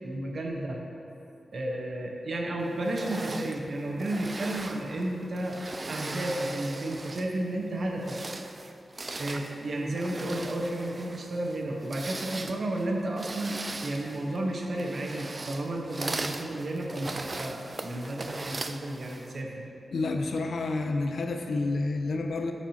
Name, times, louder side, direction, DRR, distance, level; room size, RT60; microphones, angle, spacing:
voice 1, 0.0-0.8 1.5-5.6 5.9-8.2 9.1-19.7, right 1 dB, 65° right, -1 dB, 1.1 m, -32 dB
sound 1, 2.8-7.4 7.9-19.4, right 2 dB, 40° right, 0.4 m, -39 dB
voice 2, 19.9-22.5, left 3 dB, 75° left, 4 dB, 0.5 m, -29 dB
14.0 x 4.8 x 2.9 m, 2.9 s
cardioid pair, 50°, 0 cm